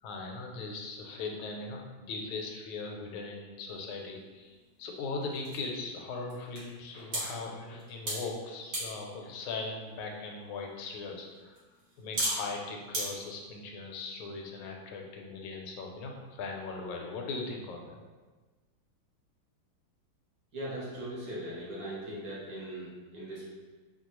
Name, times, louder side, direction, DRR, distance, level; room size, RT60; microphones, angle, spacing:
voice 1, 0.0-11.6 12.0-18.0, left 3 dB, 80° left, 1 dB, 1.4 m, -39 dB
sound 1, 3.7-13.1, right 1 dB, 80° right, 2.3 m, -40 dB
voice 2, 20.5-23.4, right 1 dB, 60° right, -7 dB, 1.6 m, -39 dB
4.5 x 2.3 x 2.9 m, 1.3 s
omnidirectional pair, 2.2 m